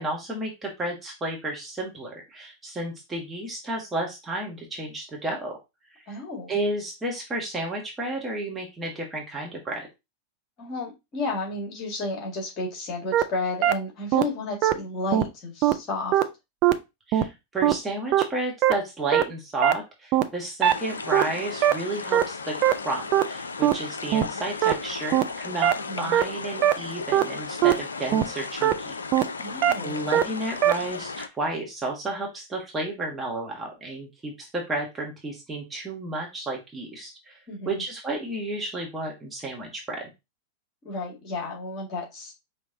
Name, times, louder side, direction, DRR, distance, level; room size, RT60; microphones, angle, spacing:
voice 1, 0.0-5.6 6.5-9.9 17.1-28.9 29.8-37.3 37.6-40.1, right 2 dB, 15° right, -1 dB, 1.3 m, -32 dB
voice 2, 6.1-6.5 10.6-16.2 25.9-26.1 29.4-30.0 37.5-37.8 40.8-42.3, left 2 dB, 35° left, -1 dB, 2.0 m, -32 dB
sound 1, 13.1-13.2 13.6-13.7 14.1-14.2 14.6-14.7 15.1-15.2 15.6-15.7 16.1-16.2 16.6-16.7 17.1-17.2 17.6-17.7 18.1-18.2 18.6-18.7 19.1-19.2 19.6-19.7 20.1-20.2 20.6-20.7 21.1-21.2 21.6-21.7 22.1-22.2 22.6-22.7 23.1-23.2 23.6-23.7 24.1-24.2 24.6-24.7 25.1-25.2 25.6-25.7 26.1-26.2 26.6-26.7 27.1-27.2 27.6-27.7 28.1-28.2 28.6-28.7 29.1-29.2 29.6-29.7 30.1-30.2 30.6-30.7, right 12 dB, 40° right, 0.4 m, -19 dB
sound 2, 20.6-31.3, left 4 dB, 75° left, 0.4 m, -35 dB
5.2 x 3.1 x 2.7 m, 0.24 s
figure-of-eight pair, 90°, 0 cm